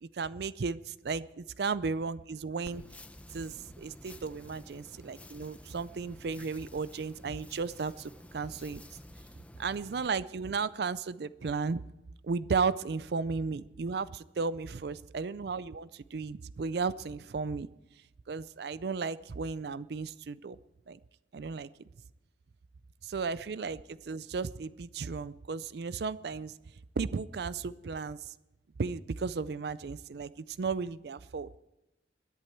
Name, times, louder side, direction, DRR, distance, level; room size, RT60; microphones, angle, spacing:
voice 1, 0.0-2.8 3.3-8.8 9.6-11.8 12.2-17.7 18.3-20.6 20.9-21.0 21.3-21.7 23.0-26.5 27.0-28.3 28.8-31.5, right 4 dB, 60° right, 17 dB, 0.4 m, -34 dB
sound 1, 2.6-10.1, left 1 dB, 5° left, 0.7 m, -51 dB
21.5 x 11.0 x 4.5 m, 0.98 s
head